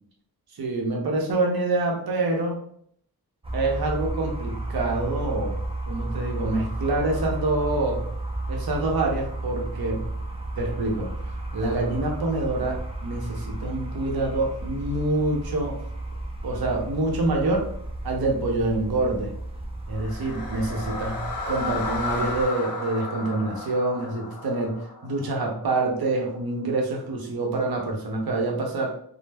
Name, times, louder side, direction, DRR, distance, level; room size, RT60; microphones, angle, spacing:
voice 1, 0.5-2.6 3.5-5.5 5.9-8.0 8.5-10.0 10.6-11.1 11.5-15.8 16.4-17.7 18.0-19.3 19.9-29.0, right 2 dB, 70° right, 0 dB, 0.7 m, -26 dB
sound 1, 3.4-22.5, right 2 dB, 15° right, 0.4 m, -33 dB
sound 2, 19.9-26.0, left 3 dB, 60° left, 0.7 m, -34 dB
2.1 x 2.0 x 3.3 m, 0.64 s
wide cardioid pair, 55°, 38 cm